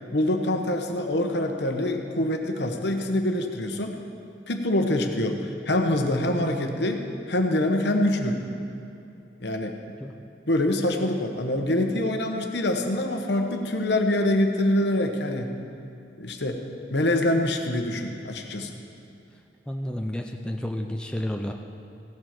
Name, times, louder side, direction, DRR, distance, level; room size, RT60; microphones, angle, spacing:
voice 1, 0.1-4.0 4.5-8.4 9.4-9.7 10.5-15.5 16.2-16.6 16.9-18.7, left 1 dB, 60° left, 4 dB, 1.1 m, -25 dB
voice 2, 19.7-21.5, left 1 dB, 5° left, 2 dB, 0.5 m, -31 dB
15.5 x 7.6 x 6.0 m, 2.7 s
head